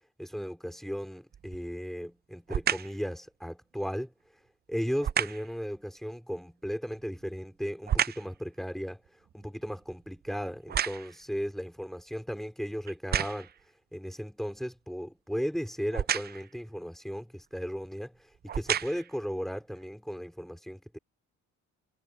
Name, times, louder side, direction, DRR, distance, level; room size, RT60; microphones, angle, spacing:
voice 1, 0.2-4.1 4.7-9.0 9.3-13.5 13.9-18.1 18.4-21.0, equal, ahead, 3.7 m, -36 dB
sound 1, 1.3-1.7 2.5-3.0 5.0-5.5 6.9-8.4 8.8-11.3 12.0-12.1 12.9-13.6 15.9-16.5 17.5-17.7 18.3-19.2 19.8-19.9, right 9 dB, 35° right, 0.4 m, -32 dB
cardioid pair, 90°, 30 cm